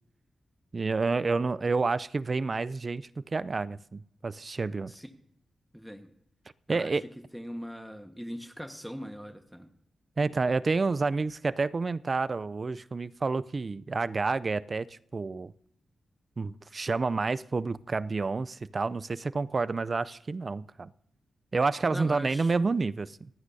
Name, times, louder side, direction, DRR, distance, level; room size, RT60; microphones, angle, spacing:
voice 1, 0.7-4.9 6.7-7.1 10.2-15.5 16.4-20.9 21.5-23.3, right 4 dB, 45° right, 17 dB, 0.5 m, -29 dB
voice 2, 5.7-6.1 6.7-7.0 7.3-9.7 21.9-22.5, equal, ahead, 6 dB, 1.4 m, -41 dB
27.0 x 9.5 x 2.7 m, 0.71 s
supercardioid pair, 45°, 0 cm